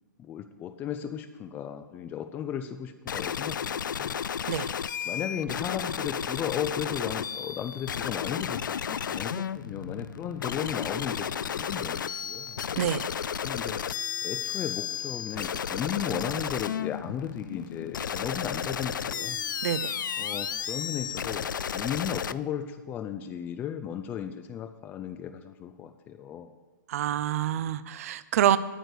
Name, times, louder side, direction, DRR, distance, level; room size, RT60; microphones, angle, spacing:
voice 1, 0.2-4.2 5.1-12.6 13.4-13.8 14.2-19.4 20.2-21.5 21.7-26.5, left 9 dB, 15° left, 8 dB, 0.4 m, -35 dB
sound 1, 3.1-22.3, left 8 dB, 80° left, 0.4 m, -33 dB
voice 2, 19.6-19.9 26.9-28.6, right 11 dB, 50° right, 15 dB, 0.5 m, -26 dB
9.1 x 6.5 x 8.2 m, 1.3 s
hypercardioid pair, 140°, 10 cm